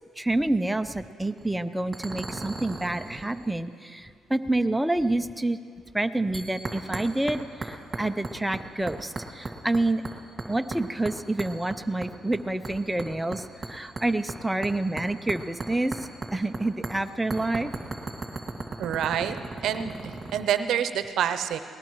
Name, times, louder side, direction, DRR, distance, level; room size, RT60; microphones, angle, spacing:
voice 1, 0.2-5.6 5.9-10.0 10.5-13.4 13.7-15.9 16.3-17.7, right 2 dB, 5° right, 9 dB, 0.4 m, -28 dB
sound 1, 1.2-1.5 1.9-3.5 6.3-7.4 7.6-8.6 8.9-9.8 10.0-10.8 11.1-12.4 12.6-16.6 16.8-16.9 17.3-20.4, right 3 dB, 30° right, 2.1 m, -35 dB
voice 2, 18.8-19.4 19.6-21.6, right 9 dB, 75° right, 9 dB, 0.7 m, -27 dB
20.5 x 18.5 x 3.1 m, 2.3 s
cardioid pair, 90°, 0 cm